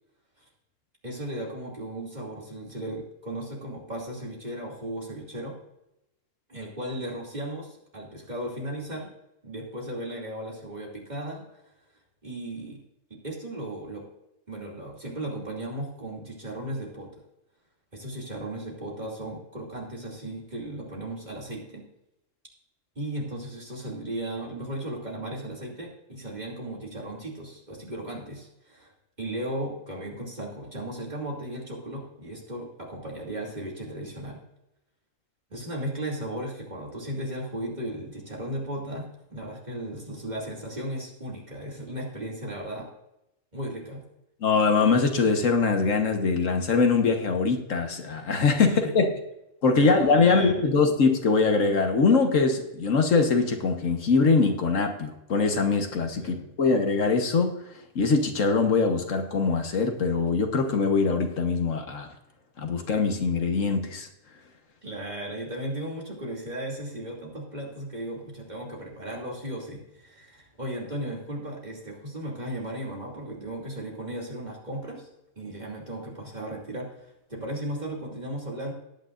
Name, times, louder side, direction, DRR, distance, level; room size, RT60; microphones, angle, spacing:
voice 1, 1.0-5.6 6.5-9.1 9.4-11.6 12.2-12.8 13.1-14.0 14.5-17.1 17.9-21.9 22.9-28.9 29.2-34.4 35.5-42.9 43.5-44.0 48.6-49.1 49.7-50.6 56.1-56.5 64.8-75.1 75.4-78.7, right 1 dB, 35° right, -2 dB, 2.8 m, -36 dB
voice 2, 44.4-49.1 49.6-57.5 57.9-62.1 62.6-64.1, left 4 dB, 75° left, 5 dB, 1.6 m, -23 dB
18.5 x 9.3 x 2.5 m, 0.87 s
omnidirectional pair, 1.3 m